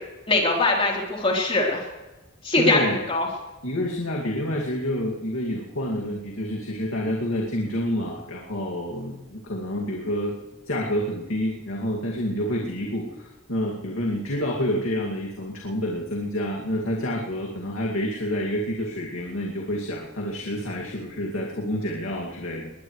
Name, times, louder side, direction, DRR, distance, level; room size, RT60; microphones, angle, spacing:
voice 1, 0.3-1.8 2.4-2.8 3.1-3.3, left 2 dB, 25° left, -1 dB, 3.8 m, -21 dB
voice 2, 2.6-3.1 3.6-10.4 10.7-22.7, equal, 80° left, -2 dB, 2.3 m, -28 dB
20.5 x 20.5 x 3.2 m, 1.1 s
head